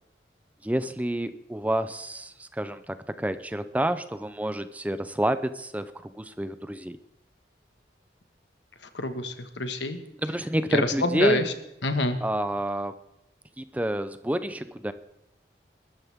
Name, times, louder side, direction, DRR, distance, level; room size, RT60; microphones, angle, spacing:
voice 1, 0.6-7.0 10.2-11.4 12.2-13.0 13.6-14.9, right 1 dB, 10° right, 12 dB, 0.5 m, -28 dB
voice 2, 8.9-10.0 10.7-11.4 11.8-12.2, left 2 dB, 85° left, 8 dB, 1.6 m, -27 dB
21.5 x 13.0 x 3.6 m, 0.86 s
head